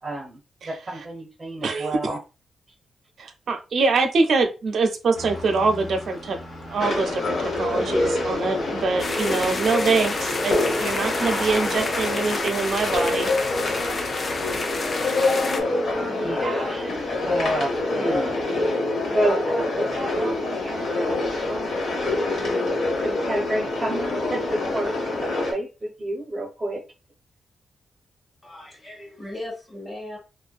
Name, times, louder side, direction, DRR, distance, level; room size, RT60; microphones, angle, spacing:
voice 1, 0.0-2.2 15.5-15.7 16.1-18.4 19.1-22.3 23.0-24.9 25.2-26.8, right 1 dB, 25° right, 0.7 m, -30 dB
voice 2, 1.6-2.2 3.2-6.4 6.7-13.3 13.6-13.8 14.1-14.3, right 4 dB, 65° right, 0.5 m, -24 dB
sound 1, 5.1-14.6, left 1 dB, 60° left, 1.3 m, -37 dB
sound 2, 6.8-25.5, left 2 dB, 75° left, 0.9 m, -26 dB
sound 3, 9.0-15.6, left 3 dB, 40° left, 0.3 m, -30 dB
voice 3, 28.4-30.2, left 1 dB, 20° left, 1.1 m, -37 dB
2.5 x 2.1 x 2.3 m
cardioid pair, 110°, 0 cm